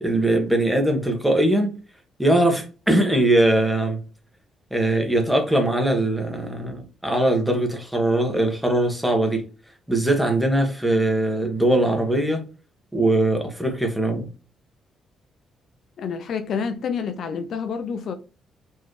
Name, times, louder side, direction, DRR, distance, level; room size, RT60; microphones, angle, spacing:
voice 1, 0.0-1.7 2.2-4.0 4.7-9.4 9.9-12.4 12.9-14.3, right 1 dB, 5° right, 1.5 m, -21 dB
voice 2, 16.0-18.1, left 6 dB, 65° left, 0.6 m, -28 dB
4.5 x 3.2 x 3.2 m
cardioid pair, 90°, 0 cm